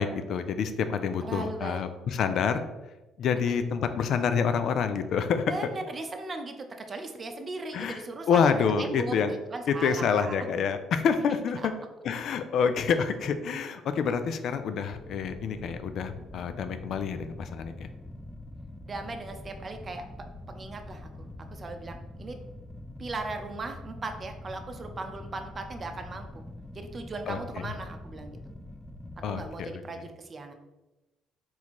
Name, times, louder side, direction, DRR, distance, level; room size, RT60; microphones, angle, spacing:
voice 1, 0.0-2.7 3.2-5.5 7.7-9.3 9.7-11.6 12.0-17.9 27.3-27.4 29.2-30.0, left 6 dB, 60° left, 10 dB, 0.3 m, -27 dB
voice 2, 1.2-1.8 3.5-3.6 5.5-10.4 18.8-20.0 20.5-21.1 21.5-22.3 23.0-26.4 26.7-28.4 29.2-30.5, right 3 dB, 40° right, 6 dB, 0.6 m, -38 dB
sound 1, 14.9-29.5, left 1 dB, 5° left, 0.5 m, -44 dB
4.0 x 2.9 x 4.1 m, 1.0 s
hypercardioid pair, 55°, 0 cm